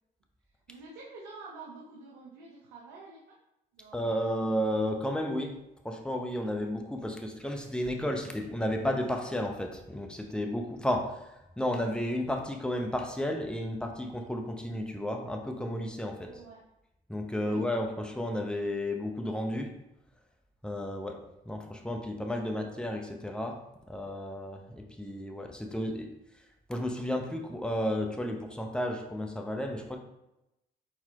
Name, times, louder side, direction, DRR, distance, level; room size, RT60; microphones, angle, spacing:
voice 1, 0.4-3.4 3.7-4.0 16.3-16.6 17.4-17.8 22.4-22.8, right 3 dB, 85° right, -3 dB, 0.7 m, -49 dB
voice 2, 3.9-5.6 5.8-16.3 17.1-19.7 20.6-21.2 21.4-23.6 23.9-26.1 26.7-30.0, left 1 dB, 5° left, 3 dB, 0.8 m, -32 dB
4.2 x 4.2 x 2.8 m, 0.89 s
hypercardioid pair, 50°, 20 cm